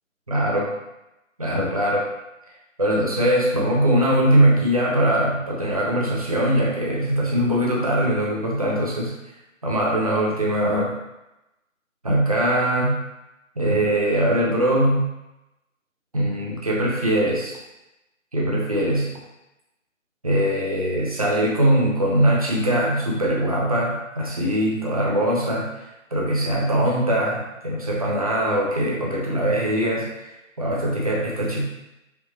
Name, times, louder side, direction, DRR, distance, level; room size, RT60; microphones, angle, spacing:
voice 1, 0.3-0.7 1.4-2.1 2.8-9.1 9.6-10.9 12.0-13.0 13.6-15.1 16.1-17.6 18.3-19.1 20.2-25.7 26.1-30.1 30.6-31.6, right 1 dB, 30° right, -4 dB, 0.6 m, -21 dB
5.0 x 2.8 x 2.9 m, 0.94 s
figure-of-eight pair, 160°, 40 cm